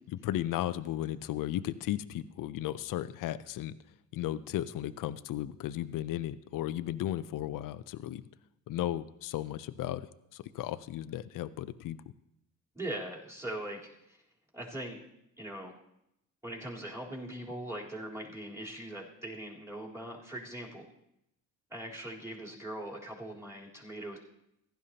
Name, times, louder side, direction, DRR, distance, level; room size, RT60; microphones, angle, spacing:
voice 1, 0.1-3.7 4.1-8.2 8.7-12.0, left 13 dB, 65° left, 14 dB, 0.6 m, -35 dB
voice 2, 12.7-14.2 14.5-15.0 15.4-15.7 16.4-20.9 21.7-24.2, right 1 dB, 10° right, -3 dB, 3.6 m, -41 dB
15.5 x 11.5 x 2.8 m, 0.82 s
supercardioid pair, 65°, 34 cm